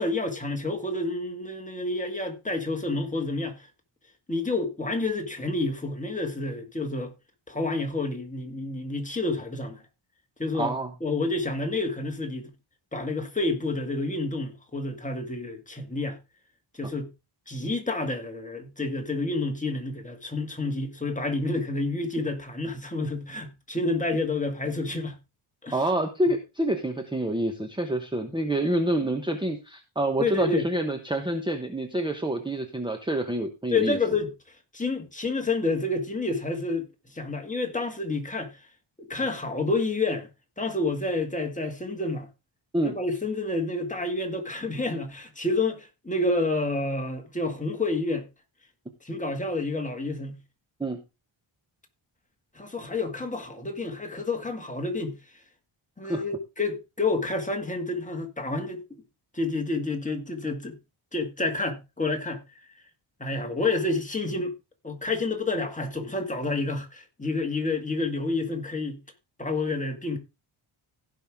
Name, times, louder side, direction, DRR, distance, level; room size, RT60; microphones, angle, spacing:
voice 1, 0.0-3.7 4.3-7.1 7.5-9.8 10.4-10.7 11.0-12.5 12.9-16.2 16.7-17.1 17.5-25.2 25.6-25.8 30.2-30.7 33.7-34.3 34.7-36.9 37.1-38.6 39.0-40.3 40.6-42.3 42.8-48.3 49.0-50.4 52.5-55.2 56.0-59.0 59.3-60.8 61.1-62.4 63.2-64.5 64.8-69.0 69.4-70.2, left 2 dB, 15° left, 2.1 m, -29 dB
voice 2, 10.5-10.9 16.8-16.9 25.7-34.0 42.7-43.0 50.8-51.0 56.1-56.2, right 1 dB, 10° right, 1.0 m, -27 dB
16.5 x 5.7 x 3.6 m
wide cardioid pair, 130°, 50 cm